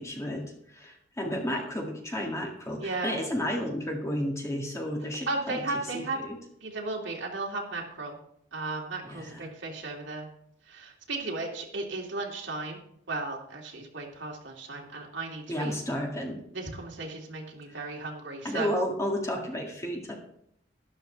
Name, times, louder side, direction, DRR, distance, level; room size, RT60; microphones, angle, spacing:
voice 1, 0.0-5.6 5.9-6.4 9.0-9.5 15.5-16.4 17.7-17.9 18.4-20.2, equal, 15° left, 0 dB, 2.0 m, -32 dB
voice 2, 2.8-3.2 5.3-6.2 6.6-8.2 8.5-10.3 10.7-12.8 13.1-15.7 16.5-18.7, right 2 dB, 80° right, -1 dB, 2.6 m, -35 dB
12.5 x 12.0 x 3.4 m, 0.71 s
head